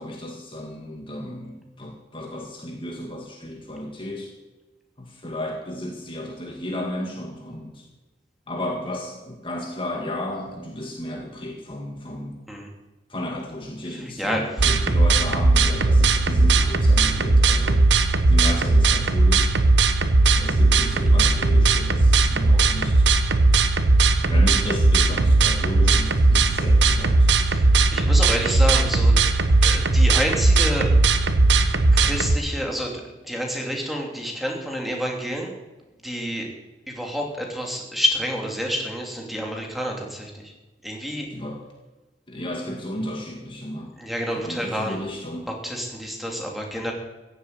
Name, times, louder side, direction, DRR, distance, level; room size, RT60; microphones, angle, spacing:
voice 1, 0.0-4.3 5.0-7.9 8.5-12.4 13.1-17.8 18.3-19.7 20.3-23.1 24.2-27.3 41.3-41.6 42.3-43.9 44.3-45.5, left 1 dB, 30° left, 1 dB, 2.0 m, -33 dB
voice 2, 13.9-14.6 27.5-27.7 27.9-29.1 29.6-30.9 31.9-35.5 36.0-36.5 36.9-40.5 40.8-41.3 44.0-45.0 45.6-46.9, equal, ahead, 0 dB, 3.0 m, -28 dB
sound 1, 14.6-32.4, right 3 dB, 85° right, 1.1 m, -18 dB
15.5 x 8.2 x 9.6 m, 1.1 s
head